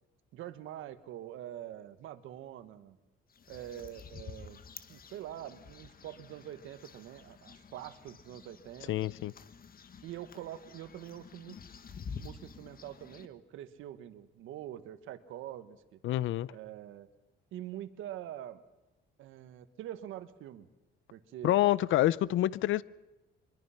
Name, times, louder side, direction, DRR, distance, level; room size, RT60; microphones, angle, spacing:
voice 1, 0.3-3.0 3.5-4.6 4.9-9.1 10.0-11.6 12.0-16.0 16.5-17.1 17.5-18.6 19.2-20.7 21.1-21.6, right 12 dB, 90° right, 12 dB, 1.4 m, -45 dB
sound 1, 3.3-13.3, left 6 dB, 45° left, 1.5 m, -50 dB
voice 2, 8.9-9.3 16.0-16.5 21.4-22.8, left 14 dB, 80° left, 21 dB, 0.6 m, -27 dB
24.5 x 21.5 x 5.8 m, 1.0 s
cardioid pair, 90°, 20 cm